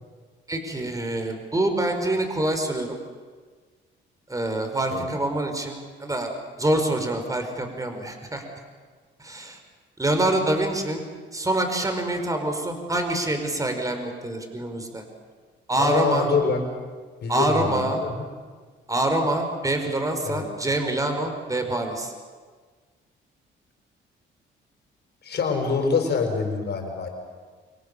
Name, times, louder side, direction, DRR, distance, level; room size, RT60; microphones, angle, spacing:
voice 1, 0.5-3.0 4.3-8.4 9.2-9.6 10.0-11.0 11.3-15.0 15.7-16.3 17.3-18.0 18.9-22.1, right 1 dB, 15° right, 5 dB, 5.0 m, -25 dB
voice 2, 15.8-16.7 17.2-18.2 20.3-20.5 25.2-27.1, left 5 dB, 55° left, 3 dB, 5.5 m, -25 dB
28.0 x 24.5 x 7.1 m, 1.5 s
cardioid pair, 90°, 20 cm